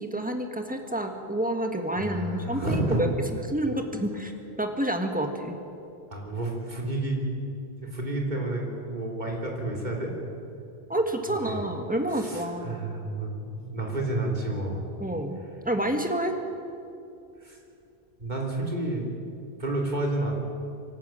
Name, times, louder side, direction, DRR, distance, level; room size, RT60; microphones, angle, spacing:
voice 1, 0.0-3.1 3.5-4.3 4.6-5.6 10.9-12.8 15.0-15.4 15.6-16.3, right 1 dB, 10° right, 4 dB, 1.7 m, -28 dB
voice 2, 2.0-3.0 6.1-7.2 7.8-10.1 11.5-11.6 12.2-14.8 17.4-17.6 18.2-19.1 19.6-20.3, right 2 dB, 45° right, -1 dB, 3.5 m, -30 dB
25.5 x 12.0 x 9.0 m, 2.6 s
omnidirectional pair, 1.1 m